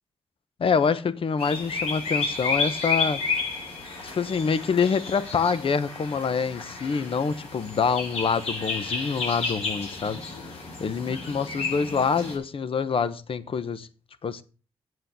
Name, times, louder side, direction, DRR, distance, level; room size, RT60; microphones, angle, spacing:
voice 1, 0.6-3.5 4.0-13.9 14.2-14.4, left 5 dB, 60° left, 1.0 m, -26 dB
sound 1, 1.4-12.4, left 4 dB, 90° left, 4.2 m, -31 dB
7.8 x 7.8 x 6.9 m
cardioid pair, 65°, 10 cm